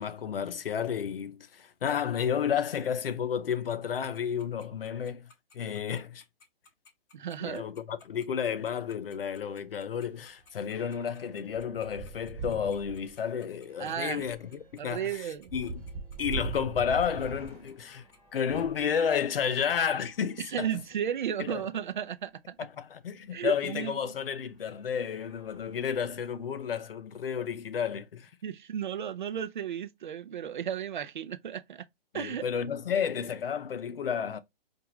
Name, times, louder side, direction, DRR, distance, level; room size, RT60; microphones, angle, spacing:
voice 1, 0.0-6.2 7.4-15.2 15.5-15.8 16.2-18.0 18.3-20.7 21.4-21.6 22.6-28.3 32.1-34.4, left 7 dB, 65° left, 0.7 m, -31 dB
Tick-tock, 3.5-18.6, left 4 dB, 25° left, 3.0 m, -58 dB
voice 2, 7.1-7.6 13.8-14.3 14.8-15.5 20.4-22.6 23.3-24.1 28.4-31.9 32.1-32.5, right 9 dB, 50° right, 0.5 m, -34 dB
sound 1, 8.5-8.6 8.9-9.0 9.4-18.8 19.6-20.9 21.6-21.7 21.9-22.0 23.7-23.9 24.5-24.7 25.1-26.4, right 3 dB, 20° right, 1.4 m, -43 dB
4.5 x 2.5 x 3.0 m
hypercardioid pair, 170°, 30 cm